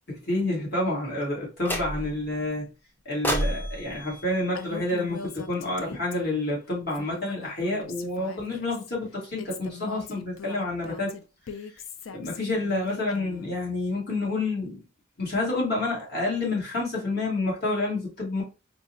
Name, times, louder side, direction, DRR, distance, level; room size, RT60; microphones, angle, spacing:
voice 1, 0.1-2.7 3.0-11.1 12.1-14.8 15.2-18.4, left 2 dB, 50° left, 1.4 m, -29 dB
sound 1, 1.6-2.3 3.2-5.5, equal, 10° left, 0.4 m, -32 dB
Female speech woman speaking, 4.5-6.5 6.9-8.9 9.4-13.5, left 5 dB, 90° left, 0.4 m, -41 dB
4.5 x 2.0 x 2.7 m
head